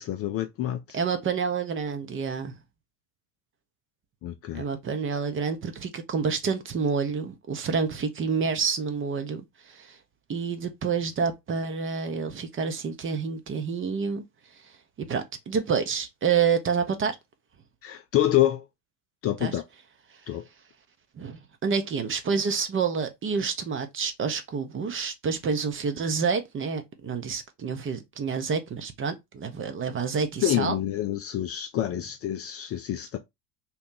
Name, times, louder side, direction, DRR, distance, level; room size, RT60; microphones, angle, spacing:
voice 1, 0.0-1.0 4.2-4.6 17.8-18.6 19.2-19.6 20.3-20.4 30.4-33.2, left 13 dB, 30° left, 0.4 m, -27 dB
voice 2, 0.9-2.5 4.5-10.0 10.3-14.2 15.0-17.2 19.4-19.6 21.2-30.8, right 5 dB, 25° right, 0.7 m, -28 dB
2.9 x 2.3 x 3.7 m
hypercardioid pair, 80°, 47 cm